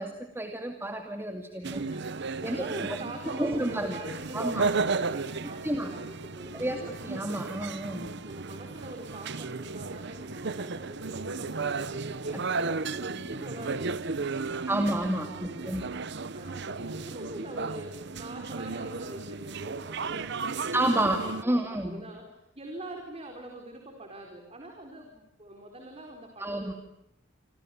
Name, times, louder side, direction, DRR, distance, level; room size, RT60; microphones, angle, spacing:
voice 1, 0.0-1.8 2.4-2.6 3.4-4.0 4.3-4.7 5.6-5.9 6.5-8.2 14.7-15.9 20.7-22.0 26.4-26.7, right 1 dB, 10° right, 4 dB, 2.3 m, -30 dB
voice 2, 1.5-7.0 8.2-14.7 15.2-16.0 16.3-26.7, right 1 dB, 30° right, 2 dB, 4.6 m, -44 dB
sound 1, 1.6-21.4, right 4 dB, 60° right, 1.0 m, -34 dB
28.0 x 27.0 x 7.2 m, 0.83 s
head